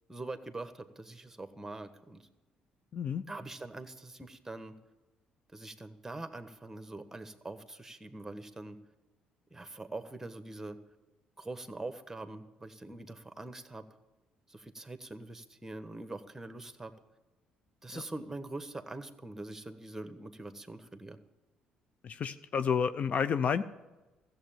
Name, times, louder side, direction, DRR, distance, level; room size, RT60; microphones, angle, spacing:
voice 1, 0.1-2.3 3.3-4.7 5.5-8.8 9.5-10.8 11.4-13.8 14.5-16.9 17.8-21.2, right 2 dB, 15° right, 10 dB, 1.3 m, -43 dB
voice 2, 2.9-3.2 17.9-18.0 22.0-23.6, left 7 dB, 50° left, 13 dB, 0.6 m, -30 dB
14.5 x 7.7 x 8.9 m, 1.1 s
hypercardioid pair, 55°, 3 cm